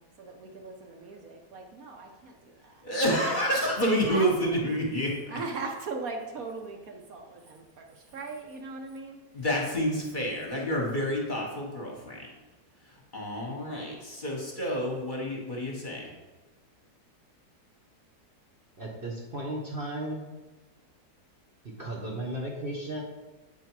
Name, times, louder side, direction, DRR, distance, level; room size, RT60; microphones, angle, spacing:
voice 1, 0.0-2.8 3.1-3.3 4.1-4.8 5.3-9.2, right 3 dB, 65° right, 3 dB, 1.2 m, -39 dB
voice 2, 2.8-5.4 9.3-12.2 13.1-16.1, equal, 30° left, -2 dB, 1.4 m, -29 dB
voice 3, 18.8-20.3 21.8-23.0, right 1 dB, 40° right, -1 dB, 1.1 m, -35 dB
8.1 x 4.6 x 4.7 m, 1.2 s
omnidirectional pair, 1.7 m